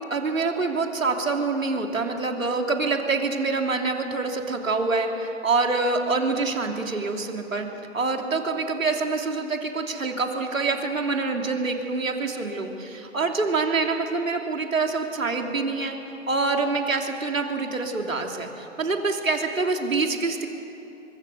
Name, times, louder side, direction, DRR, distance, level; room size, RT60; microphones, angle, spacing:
voice 1, 0.1-7.7 7.9-16.0 16.3-20.5, right 3 dB, 85° right, 3 dB, 3.2 m, -26 dB
25.0 x 23.5 x 6.9 m, 3.0 s
hypercardioid pair, 145°, 39 cm